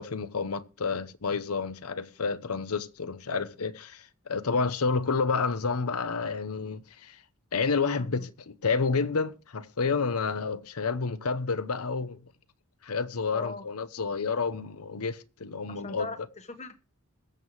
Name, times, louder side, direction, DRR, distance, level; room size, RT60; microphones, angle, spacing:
voice 1, 0.0-7.2 7.5-12.2 12.8-16.1, left 4 dB, 85° left, 0.8 m, -30 dB
voice 2, 8.0-8.3 13.3-13.7 15.7-16.8, left 3 dB, 30° left, 1.1 m, -40 dB
21.5 x 7.4 x 3.1 m
head